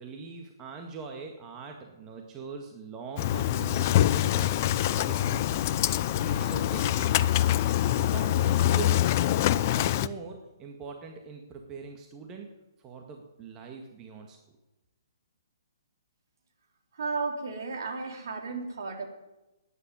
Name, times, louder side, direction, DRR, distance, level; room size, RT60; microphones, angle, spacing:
voice 1, 0.0-5.6 6.2-7.2 8.0-9.1 9.4-12.5 12.8-14.4, right 5 dB, 20° right, 3 dB, 1.8 m, -42 dB
Engine starting, 3.2-10.1, left 12 dB, 40° left, 0.6 m, -25 dB
voice 2, 17.0-19.1, right 4 dB, 60° right, 3 dB, 3.5 m, -33 dB
13.0 x 10.0 x 9.9 m, 1.0 s
figure-of-eight pair, 130°, 2 cm